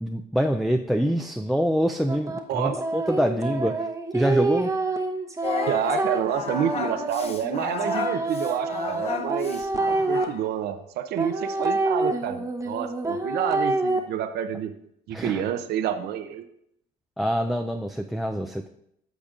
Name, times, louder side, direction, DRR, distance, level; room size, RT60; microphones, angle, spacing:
voice 1, 0.0-3.9 4.1-4.7 15.1-15.4 17.2-18.7, equal, ahead, 5 dB, 0.3 m, -25 dB
sound 1, 2.1-10.2 11.2-14.0, right 2 dB, 20° right, 0.8 m, -27 dB
Singing, 5.4-10.5, left 5 dB, 35° left, 0.7 m, -32 dB
voice 2, 5.7-14.7 15.1-16.4, right 9 dB, 75° right, 8 dB, 0.6 m, -29 dB
13.5 x 5.1 x 2.4 m, 0.75 s
cardioid pair, 110°, 17 cm